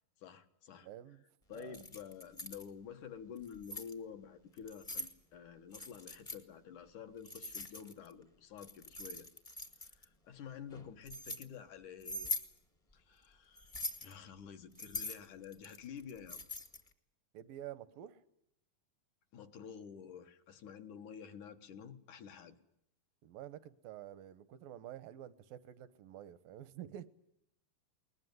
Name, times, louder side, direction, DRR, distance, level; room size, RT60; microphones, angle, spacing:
voice 1, 0.2-0.9 1.5-9.3 9.9-12.4 12.9-16.4 19.3-22.6, left 7 dB, 65° left, 6 dB, 2.7 m, -50 dB
voice 2, 0.8-1.2 1.5-1.8 17.3-18.2 23.2-27.1, right 12 dB, 80° right, 14 dB, 2.8 m, -49 dB
Keys jangling, 1.6-2.6 3.4-3.9 4.6-5.1 5.7-6.4 7.3-8.1 8.6-10.0 10.7-11.4 12.0-12.5 13.6-14.1 14.8-16.9, left 2 dB, 15° left, 1.1 m, -42 dB
21.0 x 20.5 x 9.5 m, 0.77 s
omnidirectional pair, 4.0 m